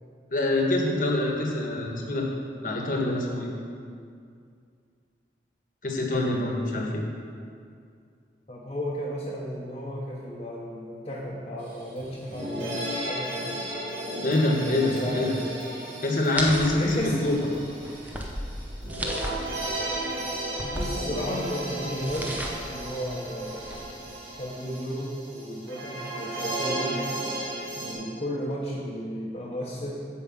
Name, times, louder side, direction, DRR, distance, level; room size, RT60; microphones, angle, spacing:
voice 1, 0.3-2.3 2.6-3.5 5.8-7.0 14.2-15.4 16.0-17.4, left 2 dB, 50° left, 0 dB, 1.3 m, -25 dB
voice 2, 8.5-13.9 14.6-15.4 16.7-17.2 20.6-22.4 22.7-23.7 24.4-27.0 27.7-29.9, equal, 30° left, -5 dB, 1.0 m, -34 dB
sound 1, 11.7-11.8 12.0-27.9, right 1 dB, 85° right, 2.6 m, -34 dB
sound 2, 16.4-24.1, equal, 10° right, 0.7 m, -36 dB
8.5 x 5.1 x 7.3 m, 2.3 s
head